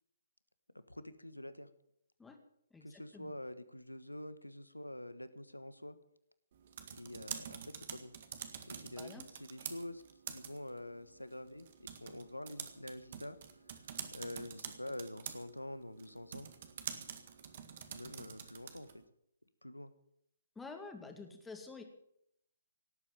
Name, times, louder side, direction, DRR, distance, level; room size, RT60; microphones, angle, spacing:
voice 1, 0.7-1.7 2.8-6.0 6.9-8.1 8.7-10.0 10.3-13.4 13.7-13.8 14.1-16.5 17.9-19.0 19.6-19.9, left 1 dB, 85° left, 14 dB, 1.3 m, -47 dB
voice 2, 2.7-3.3 9.0-9.3 20.6-21.8, left 4 dB, 5° left, 5 dB, 2.0 m, -49 dB
sound 1, 6.5-19.0, right 8 dB, 40° right, 1.8 m, -48 dB
18.0 x 8.7 x 8.9 m, 0.73 s
figure-of-eight pair, 135°, 0 cm